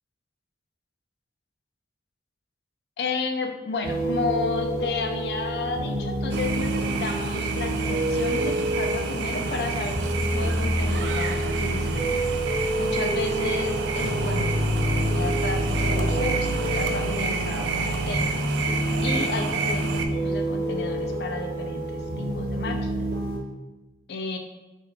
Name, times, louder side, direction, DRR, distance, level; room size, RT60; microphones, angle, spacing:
voice 1, 3.0-12.0 12.8-14.6 14.9-18.4 19.0-23.1 24.1-24.4, left 4 dB, 70° left, 4 dB, 0.4 m, -32 dB
sound 1, 3.8-23.4, right 1 dB, 65° right, 0.8 m, -27 dB
sound 2, 6.3-20.1, right 5 dB, 90° right, 0.3 m, -30 dB
3.0 x 2.3 x 3.5 m, 1.1 s
head